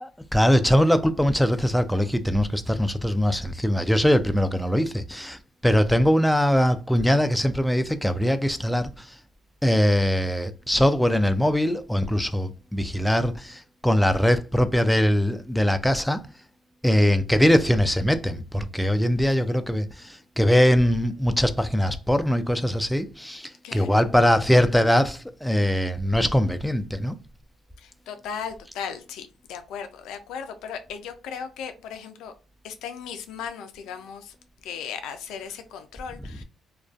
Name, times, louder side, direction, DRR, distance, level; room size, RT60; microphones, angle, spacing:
voice 1, 0.0-5.4 5.6-8.9 9.6-13.3 13.8-16.2 16.8-19.9 20.4-23.4 23.7-27.1, equal, 5° left, 0.3 m, -21 dB
voice 2, 27.8-32.3 32.6-34.3 34.6-36.4, left 7 dB, 80° left, 0.3 m, -36 dB
2.4 x 2.2 x 2.3 m
supercardioid pair, 65°, 0 cm